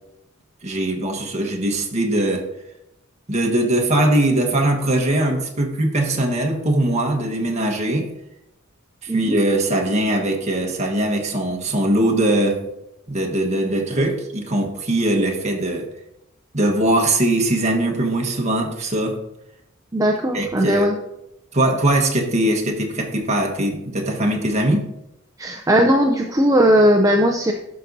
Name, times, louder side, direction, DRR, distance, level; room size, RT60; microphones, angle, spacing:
voice 1, 0.6-2.5 3.3-8.1 9.0-12.6 13.1-15.9 16.5-19.2 20.3-20.9 21.5-24.9, right 1 dB, 35° right, 2 dB, 1.2 m, -21 dB
voice 2, 9.1-9.4 19.9-21.0 25.4-27.5, equal, 15° right, 3 dB, 0.5 m, -17 dB
12.0 x 5.9 x 2.7 m, 0.85 s
head